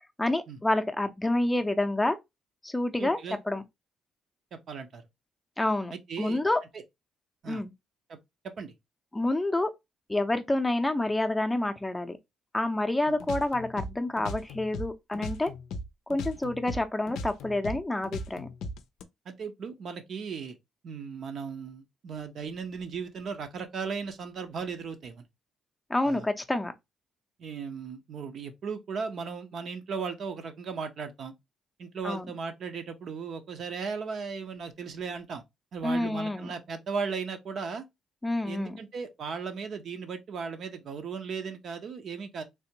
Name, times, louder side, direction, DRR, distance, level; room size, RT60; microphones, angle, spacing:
voice 1, 0.2-2.2 2.6-3.2 3.5-3.6 5.6-5.9 6.2-6.6 7.5-7.7 9.1-9.7 10.1-12.2 12.5-15.5 16.1-18.5 25.9-26.7 32.0-32.3 35.8-36.5 38.2-38.8, left 2 dB, 10° left, 0.5 m, -28 dB
voice 2, 3.0-3.4 4.5-5.0 5.9-6.4 7.4-7.6 8.1-8.2 8.4-8.7 13.1-13.2 19.3-20.6 20.8-25.2 26.0-26.3 27.4-31.3 31.8-35.4 35.7-37.8 38.4-42.4, right 5 dB, 60° right, 0.7 m, -36 dB
sound 1, 13.2-15.9 16.1-19.0, left 1 dB, 85° left, 0.4 m, -37 dB
3.3 x 2.5 x 2.8 m
cardioid pair, 90°, 0 cm